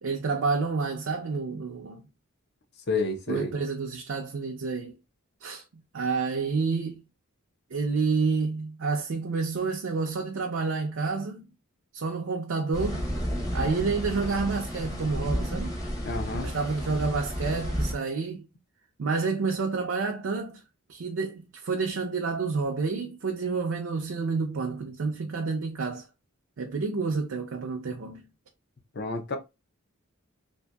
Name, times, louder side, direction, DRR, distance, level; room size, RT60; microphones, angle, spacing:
voice 1, 0.0-2.1 3.3-5.0 5.4-5.6 5.9-7.0 7.7-11.5 11.9-13.1 13.5-15.8 16.3-18.5 19.0-20.6 20.9-26.1 26.6-28.3, right 4 dB, 65° right, 0.4 m, -29 dB
voice 2, 2.9-3.5 16.0-16.5 28.9-29.4, left 3 dB, 50° left, 0.6 m, -29 dB
sound 1, 12.7-17.9, equal, 15° left, 0.7 m, -32 dB
2.7 x 2.6 x 2.2 m
head